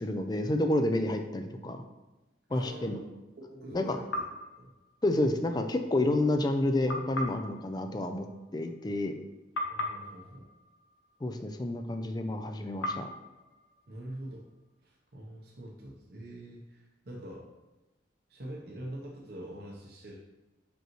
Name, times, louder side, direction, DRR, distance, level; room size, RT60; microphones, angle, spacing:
voice 1, 0.0-1.8 2.5-3.0 3.7-3.8 5.0-8.3 8.5-9.2 11.2-13.1, left 1 dB, 20° left, 6 dB, 0.4 m, -29 dB
voice 2, 2.5-4.0 4.6-4.7 9.7-10.5 13.9-14.5 14.8-17.5 18.3-20.2, right 1 dB, 55° right, -3 dB, 0.7 m, -44 dB
sound 1, 4.1-5.5 6.9-9.2 9.5-11.8 12.8-14.7, left 1 dB, 80° left, 0.8 m, -40 dB
6.2 x 5.2 x 3.0 m, 1.1 s
head